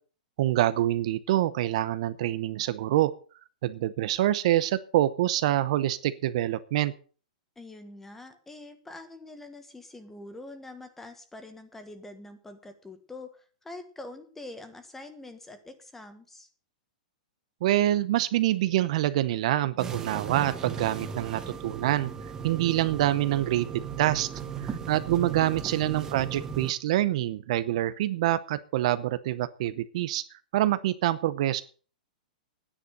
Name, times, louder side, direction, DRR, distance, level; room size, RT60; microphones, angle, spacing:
voice 1, 0.4-3.1 3.6-6.9 17.6-22.1 22.4-24.3 24.6-31.6, right 14 dB, 50° right, 15 dB, 0.8 m, -26 dB
voice 2, 7.6-16.5 25.3-25.5, left 2 dB, 5° left, 10 dB, 1.4 m, -45 dB
sound 1, 19.8-26.7, right 6 dB, 15° right, 1.4 m, -37 dB
11.0 x 10.0 x 6.6 m, 0.40 s
hypercardioid pair, 160°, 4 cm